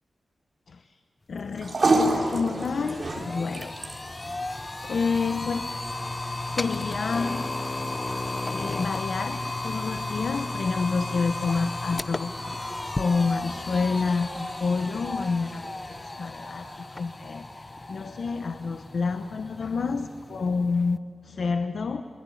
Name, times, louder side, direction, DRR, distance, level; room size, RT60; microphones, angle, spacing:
voice 1, 1.3-3.7 4.2-4.4 4.9-5.7 6.5-7.4 8.5-12.7 12.9-22.0, left 4 dB, 60° left, 8 dB, 0.9 m, -29 dB
sound 1, 1.3-17.8, right 2 dB, 40° right, 3.8 m, -34 dB
sound 2, 1.5-1.6 2.0-21.0, left 2 dB, 20° left, 0.6 m, -34 dB
26.5 x 21.5 x 8.6 m, 2.7 s
wide cardioid pair, 160°, 0 cm